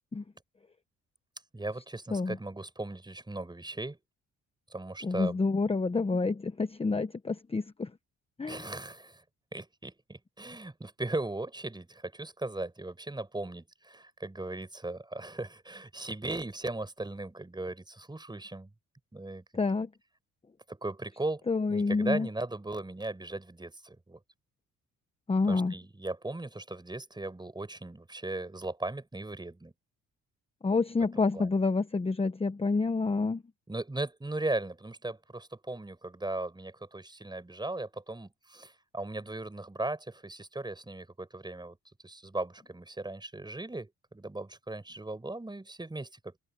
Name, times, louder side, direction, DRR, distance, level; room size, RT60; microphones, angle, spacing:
voice 1, 1.5-4.0 4.7-5.4 8.5-9.2 9.5-18.7 19.1-19.6 20.7-24.2 25.5-29.7 31.2-31.6 33.7-41.8 42.0-46.4, right 2 dB, 15° right, 6.4 m, -38 dB
voice 2, 5.0-7.9 8.4-8.7 19.5-19.9 21.5-22.3 25.3-25.7 30.6-33.4, left 3 dB, 20° left, 1.0 m, -28 dB
cardioid pair, 90°, 30 cm